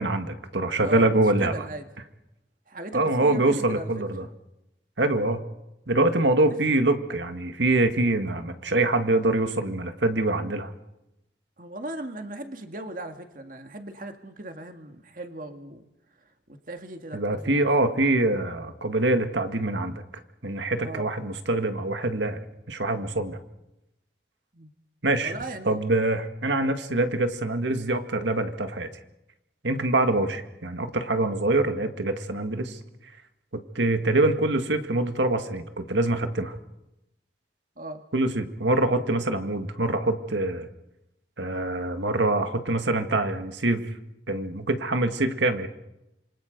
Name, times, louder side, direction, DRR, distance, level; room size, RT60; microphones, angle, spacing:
voice 1, 0.0-1.5 2.9-4.3 5.0-5.4 5.9-10.7 17.1-20.0 20.4-23.4 25.0-25.3 25.7-28.9 29.6-32.8 33.5-36.6 38.1-40.7 41.4-44.0 44.3-45.7, right 2 dB, 85° right, 7 dB, 1.8 m, -24 dB
voice 2, 0.8-1.9 2.7-4.0 11.6-15.9 16.5-18.0 20.8-21.1 24.5-24.7 25.2-25.8 29.8-30.0 37.8-38.0, right 1 dB, 50° right, 6 dB, 1.9 m, -38 dB
27.0 x 24.5 x 5.2 m, 0.92 s
head